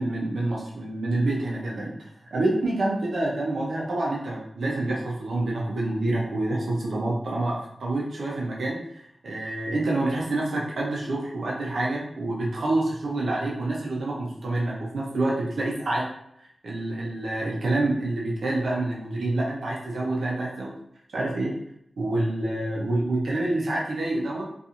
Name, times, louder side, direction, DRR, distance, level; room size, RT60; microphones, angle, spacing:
voice 1, 0.0-16.1 16.4-20.7 21.1-21.5 22.0-24.5, right 2 dB, 80° right, -3 dB, 0.5 m, -27 dB
2.4 x 2.4 x 2.8 m, 0.73 s
wide cardioid pair, 120°, 0 cm